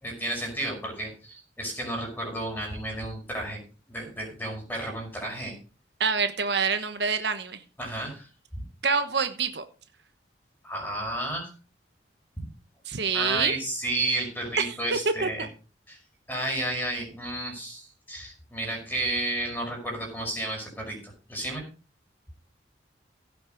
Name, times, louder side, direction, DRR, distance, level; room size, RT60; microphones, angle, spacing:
voice 1, 0.0-3.6 3.9-5.6 7.8-8.6 10.6-11.5 12.4-12.5 13.1-15.5 15.9-16.0 16.3-21.6, right 1 dB, 10° left, 1 dB, 5.4 m, -32 dB
voice 2, 6.0-7.6 8.8-9.6 12.9-13.5 14.7-14.8 15.2-15.5, right 5 dB, 65° right, 9 dB, 1.1 m, -26 dB
16.0 x 6.2 x 5.2 m, 0.35 s
head